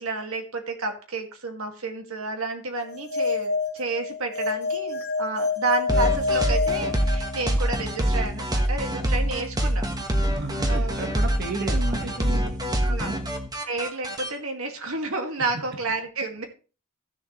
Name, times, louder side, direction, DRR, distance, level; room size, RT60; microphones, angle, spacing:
voice 1, 0.0-9.9 10.6-11.1 12.8-13.1 13.7-16.4, right 3 dB, 70° right, 4 dB, 2.1 m, -31 dB
sound 1, 2.9-7.7, left 4 dB, 50° left, 1.6 m, -27 dB
sound 2, 5.9-14.3, right 1 dB, 20° right, 1.3 m, -25 dB
voice 2, 10.3-12.5 12.9-13.2, right 2 dB, 50° right, 2 dB, 1.6 m, -33 dB
15.5 x 7.0 x 3.2 m, 0.34 s
head